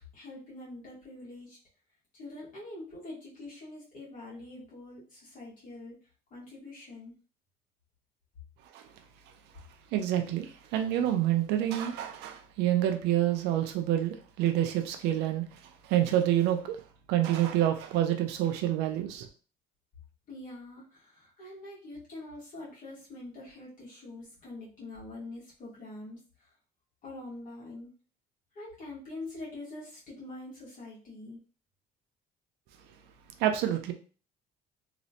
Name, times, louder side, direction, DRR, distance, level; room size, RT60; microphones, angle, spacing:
voice 1, 0.1-1.6 2.1-6.0 6.3-7.1 20.3-26.5 27.0-27.9 28.5-31.4, left 2 dB, 50° left, 1.5 m, -44 dB
voice 2, 9.9-15.4 15.8-16.8 17.1-19.3 33.4-33.9, right 12 dB, 90° right, 0.5 m, -27 dB
3.0 x 3.0 x 2.8 m
cardioid pair, 110°, 17 cm